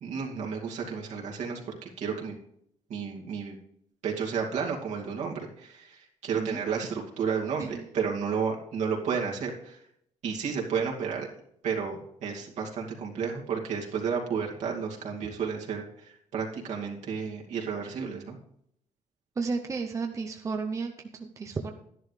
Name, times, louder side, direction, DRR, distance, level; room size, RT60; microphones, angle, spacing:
voice 1, 0.0-2.3 2.9-3.6 4.0-9.8 10.2-11.3 11.6-18.4, right 6 dB, 70° right, -1 dB, 2.4 m, -32 dB
voice 2, 6.3-6.6 7.6-7.9 19.4-21.7, right 4 dB, 25° right, 4 dB, 0.7 m, -33 dB
12.5 x 11.0 x 3.3 m, 0.72 s
cardioid pair, 170°, 12 cm